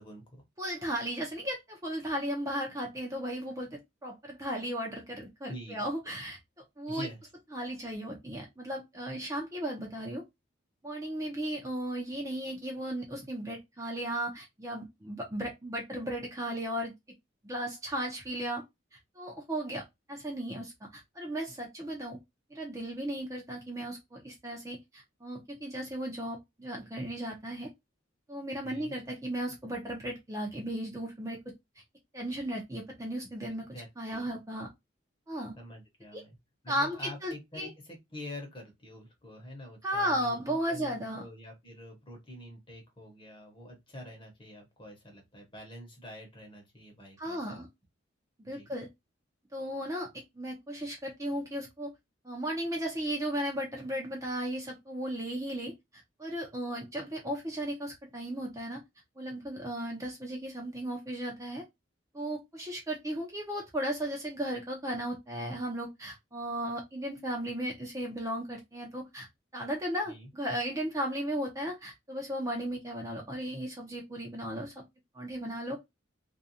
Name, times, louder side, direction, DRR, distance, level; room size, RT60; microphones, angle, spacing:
voice 1, 0.0-0.4 5.5-5.8 6.9-7.2 28.6-28.9 33.7-34.3 35.6-36.4 36.6-47.6 48.5-48.7 70.0-70.3, left 1 dB, 25° left, 1.0 m, -46 dB
voice 2, 0.6-3.7 4.0-6.4 6.8-7.1 7.5-10.2 10.8-16.9 17.4-18.6 19.2-19.8 20.1-22.2 22.5-27.7 28.3-31.4 32.1-33.7 34.0-34.7 35.3-35.6 36.1-36.2 36.7-37.7 39.8-41.3 47.2-47.7 48.4-48.9 49.5-50.1 50.3-51.9 52.2-55.7 56.2-58.8 59.2-61.6 62.1-69.3 69.5-74.7 75.1-75.8, right 1 dB, 15° right, 0.6 m, -35 dB
2.5 x 2.2 x 2.6 m
head